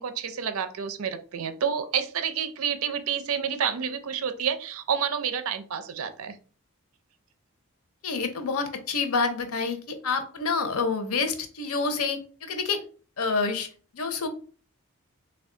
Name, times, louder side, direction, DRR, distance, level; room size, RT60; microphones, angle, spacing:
voice 1, 0.0-6.4, right 7 dB, 70° right, 10 dB, 0.5 m, -29 dB
voice 2, 8.0-12.8 13.2-13.7 13.9-14.3, left 4 dB, 85° left, 7 dB, 0.7 m, -28 dB
3.3 x 2.3 x 3.7 m, 0.39 s
head